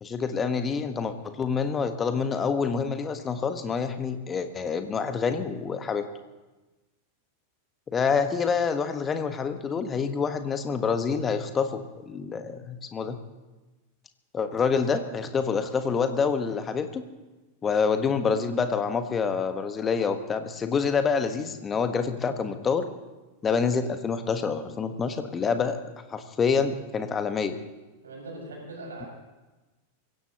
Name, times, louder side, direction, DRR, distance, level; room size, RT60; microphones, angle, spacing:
voice 1, 0.0-6.0 7.9-13.2 14.3-17.0 17.6-22.8 23.4-25.8 26.1-27.6, left 5 dB, 20° left, 8 dB, 1.4 m, -27 dB
voice 2, 28.0-29.1, right 2 dB, 70° right, -1 dB, 6.1 m, -40 dB
25.0 x 16.0 x 3.0 m, 1.1 s
figure-of-eight pair, 90°, 0 cm